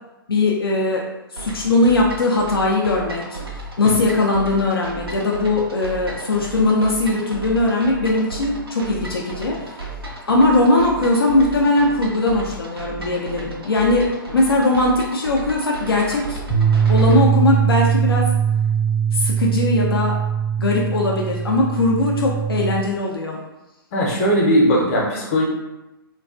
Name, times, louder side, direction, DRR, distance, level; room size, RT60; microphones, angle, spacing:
voice 1, 0.3-1.1 1.3-3.4 3.8-9.7 10.3-16.4 16.9-18.3 19.1-20.2 20.6-23.4, left 2 dB, 75° left, -2 dB, 0.4 m, -19 dB
sound 1, 1.4-17.2, right 2 dB, 80° right, 0.6 m, -34 dB
Bass guitar, 16.5-22.7, right 8 dB, 10° right, 0.5 m, -20 dB
voice 2, 23.9-25.4, equal, 35° left, -3 dB, 0.7 m, -18 dB
2.3 x 2.2 x 2.4 m, 0.99 s
figure-of-eight pair, 120°, 12 cm